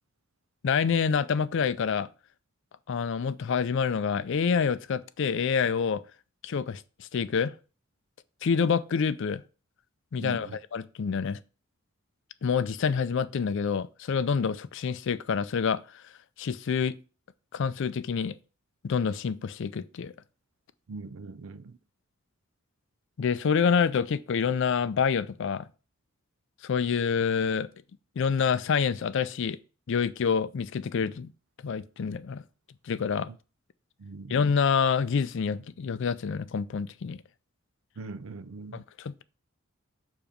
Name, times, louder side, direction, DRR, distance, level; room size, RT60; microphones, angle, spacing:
voice 1, 0.6-2.1 2.9-6.0 6.4-7.5 8.4-9.4 10.1-11.4 12.4-15.8 16.4-16.9 17.5-18.4 18.8-20.1 23.2-25.6 26.6-27.7 28.2-29.6 29.9-31.3 31.6-32.4 32.9-33.3 34.3-37.2 38.7-39.2, left 6 dB, 60° left, 0.4 m, -27 dB
voice 2, 10.2-10.6 20.9-21.7 34.0-34.3 38.0-38.8, right 3 dB, 65° right, 0.5 m, -41 dB
7.0 x 2.9 x 5.1 m
head